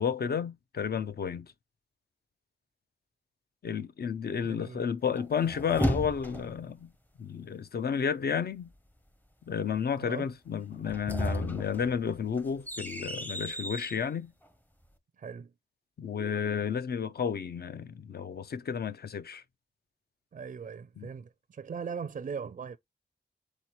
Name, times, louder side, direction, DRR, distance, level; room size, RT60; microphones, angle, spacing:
voice 1, 0.0-1.5 3.6-6.9 7.2-8.7 9.5-14.3 16.0-19.4 21.0-21.1, left 7 dB, 60° left, 0.6 m, -32 dB
voice 2, 4.4-4.8 10.0-10.3 15.2-15.5 20.3-22.8, right 6 dB, 45° right, 0.4 m, -39 dB
sound 1, 5.2-6.7 10.7-14.0, equal, 10° left, 0.6 m, -34 dB
4.1 x 3.0 x 4.2 m
wide cardioid pair, 110°, 18 cm